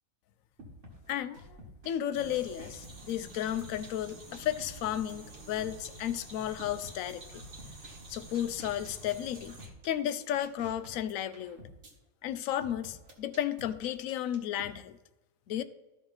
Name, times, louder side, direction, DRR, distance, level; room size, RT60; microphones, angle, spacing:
sound 1, 0.6-2.0 2.3-5.8 6.1-6.2 6.6-8.0 8.3-11.9 12.6-14.7, equal, 60° right, 1.9 m, -50 dB
voice 1, 1.1-1.6 1.8-7.4 8.1-9.6 9.8-11.6 12.2-15.0 15.5-15.6, left 11 dB, 80° left, 11 dB, 1.0 m, -33 dB
sound 2, 2.1-9.7, right 2 dB, 40° right, 1.3 m, -49 dB
14.0 x 4.8 x 4.0 m, 1.1 s
omnidirectional pair, 1.5 m